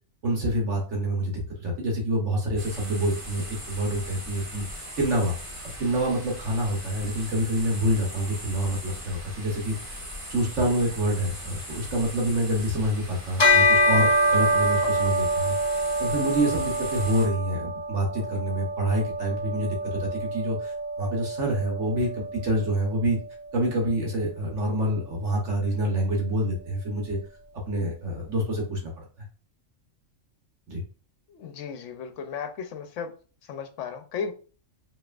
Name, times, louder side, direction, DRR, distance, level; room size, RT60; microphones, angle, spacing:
voice 1, 0.2-4.6 5.0-5.3 5.6-10.0 10.3-15.6 16.0-23.2 23.5-27.2 27.7-28.9 30.7-30.8, right 1 dB, 65° right, 1.3 m, -27 dB
sound 1, 2.6-17.3, equal, 25° right, 1.6 m, -39 dB
Bell, 13.4-23.1, equal, 50° left, 1.5 m, -25 dB
voice 2, 31.3-33.1 33.4-34.3, left 6 dB, 70° left, 1.0 m, -35 dB
5.4 x 3.0 x 2.4 m
omnidirectional pair, 1.4 m